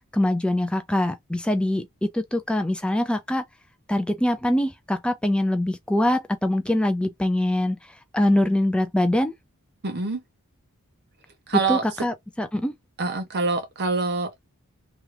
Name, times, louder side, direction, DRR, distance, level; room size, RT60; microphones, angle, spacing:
voice 1, 0.1-3.4 3.9-9.3 11.7-12.7, left 1 dB, 5° left, 0.3 m, -23 dB
voice 2, 9.8-10.2 11.5-11.8 13.0-14.5, right 4 dB, 50° right, 0.7 m, -25 dB
2.9 x 2.4 x 3.2 m
head